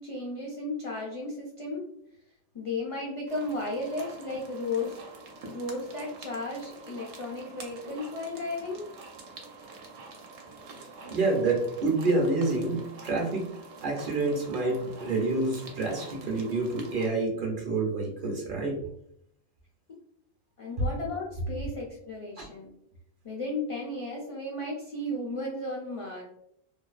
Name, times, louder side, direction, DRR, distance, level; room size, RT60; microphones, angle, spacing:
voice 1, 0.0-1.8 2.5-5.0 5.4-8.9 20.6-22.7 23.2-26.2, left 2 dB, 60° left, -3 dB, 0.3 m, -34 dB
sound 1, 3.3-17.1, right 3 dB, 80° right, 0.9 m, -46 dB
voice 2, 11.1-13.5 13.8-18.8 22.4-22.5, right 3 dB, 55° right, 0 dB, 0.7 m, -28 dB
2.5 x 2.2 x 2.3 m, 0.74 s
omnidirectional pair, 1.2 m